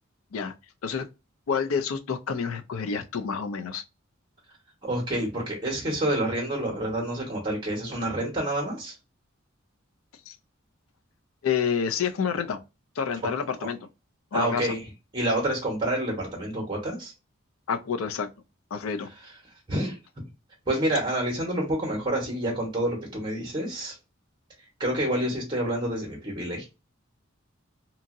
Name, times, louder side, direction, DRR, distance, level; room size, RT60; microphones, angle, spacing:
voice 1, 1.5-3.8 10.3-10.4 11.4-12.6 13.0-13.8 14.3-14.8 17.7-18.3 18.7-19.1, left 6 dB, 85° left, 0.4 m, -28 dB
voice 2, 4.8-8.9 13.6-13.7 14.3-14.8 15.1-17.1 19.7-20.0 20.7-24.0 24.8-26.7, right 1 dB, 25° right, 1.1 m, -28 dB
2.8 x 2.6 x 2.5 m
head